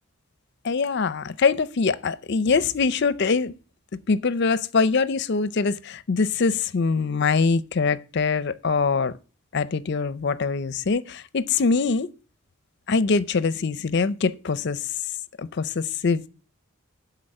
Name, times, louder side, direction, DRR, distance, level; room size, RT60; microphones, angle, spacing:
voice 1, 0.6-3.5 4.1-9.1 9.5-12.1 12.9-14.9 15.4-16.2, left 4 dB, 50° left, 0.5 m, -23 dB
11.5 x 4.1 x 6.4 m
head